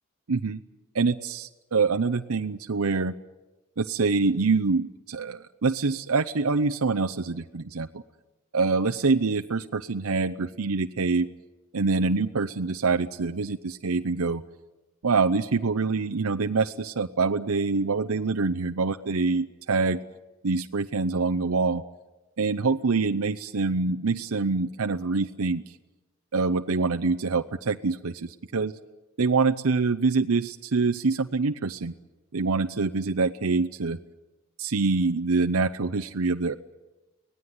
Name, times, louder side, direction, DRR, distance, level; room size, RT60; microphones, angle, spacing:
voice 1, 0.3-0.6 0.9-3.1 3.8-7.9 8.5-11.3 11.7-14.4 15.0-20.0 20.4-21.8 22.4-25.7 26.3-28.7 29.2-31.9 32.3-34.0 34.6-36.5, right 4 dB, 85° right, 6 dB, 0.7 m, -25 dB
24.0 x 18.5 x 9.5 m, 1.1 s
head